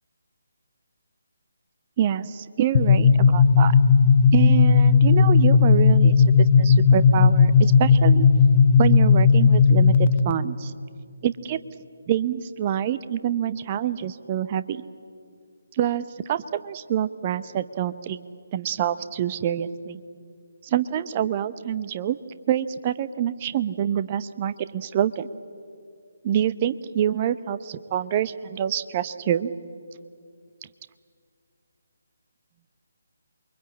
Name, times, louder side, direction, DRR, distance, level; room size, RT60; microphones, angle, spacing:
voice 1, 2.0-3.7 4.3-8.3 8.8-10.7 11.2-11.6 12.1-14.8 15.7-18.2 18.5-20.0 20.6-22.2 22.5-25.3 26.2-29.5, right 10 dB, 25° right, 14 dB, 0.9 m, -26 dB
sound 1, 2.7-10.3, left 5 dB, 35° left, 0.8 m, -16 dB
28.0 x 23.5 x 8.6 m, 2.3 s
figure-of-eight pair, 145°, 0 cm